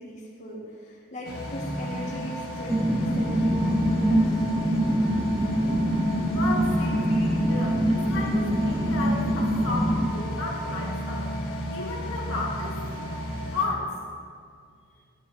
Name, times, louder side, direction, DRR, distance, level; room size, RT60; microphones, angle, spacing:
voice 1, 0.0-4.4, equal, 35° left, -5 dB, 1.5 m, -39 dB
sound 1, 1.2-13.7, equal, 90° left, 1.6 m, -33 dB
sound 2, 2.7-10.1, equal, 15° right, 0.6 m, -24 dB
voice 2, 6.3-11.3 11.7-12.8 13.5-13.9, left 3 dB, 70° left, -3 dB, 1.9 m, -33 dB
12.5 x 9.9 x 3.3 m, 2.2 s
head